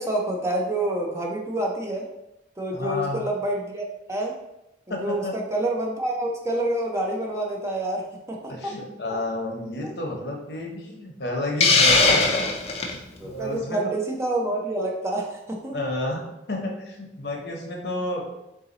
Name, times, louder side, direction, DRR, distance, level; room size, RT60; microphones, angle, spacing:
voice 1, 0.0-2.1 2.6-4.3 4.9-8.4 8.6-8.7 9.8-9.9 13.2-15.8, right 1 dB, 15° right, -1 dB, 0.5 m, -27 dB
voice 2, 2.7-3.2 4.9-5.3 8.5-12.4 12.9-13.8 15.7-16.2 16.5-18.2, left 1 dB, 70° left, 1 dB, 0.9 m, -31 dB
Hiss, 11.6-13.0, left 3 dB, 35° left, 0.5 m, -19 dB
3.8 x 2.8 x 3.9 m, 0.90 s
head